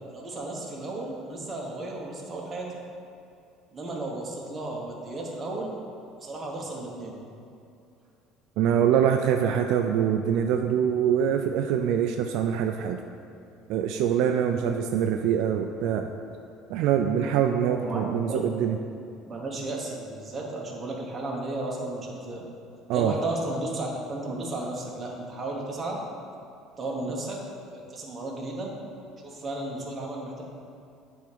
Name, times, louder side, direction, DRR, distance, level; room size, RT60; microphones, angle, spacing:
voice 1, 0.1-2.7 3.7-5.7 6.2-7.1 17.6-18.4 19.2-22.5 22.9-26.0 26.8-27.4 27.7-28.7 29.2-30.4, right 2 dB, 20° right, -2 dB, 1.1 m, -34 dB
voice 2, 8.6-13.0 13.7-16.1 16.7-18.8 22.9-23.1, right 8 dB, 65° right, 5 dB, 0.3 m, -24 dB
9.2 x 3.5 x 5.1 m, 2.6 s
cardioid pair, 150°, 0 cm